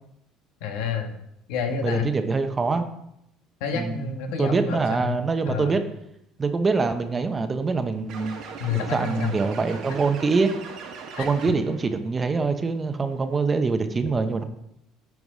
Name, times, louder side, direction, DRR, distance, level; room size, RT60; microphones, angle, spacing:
voice 1, 0.6-1.1 1.5-2.1 3.6-5.8 8.6-9.3 11.2-11.3, left 6 dB, 90° left, 5 dB, 1.4 m, -29 dB
voice 2, 1.8-2.8 3.7-4.0 4.4-5.8 6.4-8.3 8.9-10.5 11.2-14.4, right 4 dB, 20° right, 8 dB, 0.8 m, -24 dB
sound 1, 8.1-11.9, right 5 dB, 60° right, 1.5 m, -39 dB
11.0 x 4.8 x 4.9 m, 0.79 s
cardioid pair, 135°, 0 cm